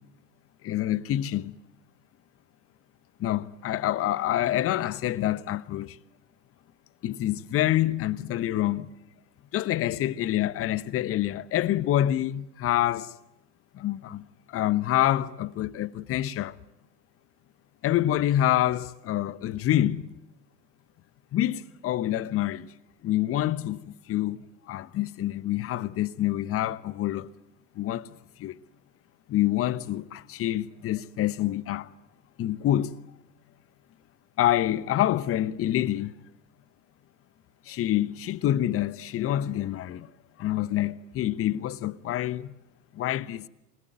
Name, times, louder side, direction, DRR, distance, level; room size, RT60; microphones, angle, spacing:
voice 1, 0.6-1.5 3.2-6.0 7.0-8.9 9.5-13.1 13.7-14.2 14.5-16.5 17.8-20.2 21.3-22.7 23.0-24.4 24.7-27.3 27.8-28.1 28.4-28.6 29.3-31.9 32.4-33.0 34.4-36.1 37.7-40.1 40.4-42.5 42.9-43.5, left 13 dB, 30° left, 1.0 m, -27 dB
27.5 x 21.0 x 9.2 m
hypercardioid pair, 95°, 48 cm